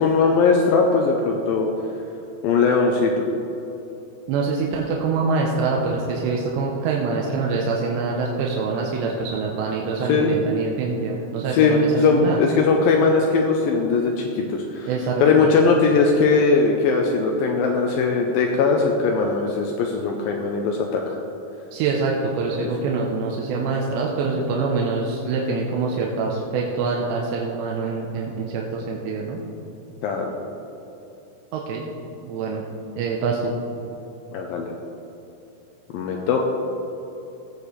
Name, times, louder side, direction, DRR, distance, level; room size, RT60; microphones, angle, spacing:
voice 1, 0.0-1.7 2.4-3.2 10.1-10.3 11.5-14.9 15.2-21.2 22.6-22.7 30.0-30.3 34.3-34.7 35.9-36.4, left 4 dB, 90° left, 1 dB, 2.0 m, -20 dB
voice 2, 4.3-12.5 14.9-15.5 21.7-29.4 31.5-31.8 32.2-32.6 33.0-33.5, right 4 dB, 85° right, -2 dB, 3.1 m, -25 dB
17.5 x 8.4 x 3.3 m, 3.0 s
omnidirectional pair, 5.0 m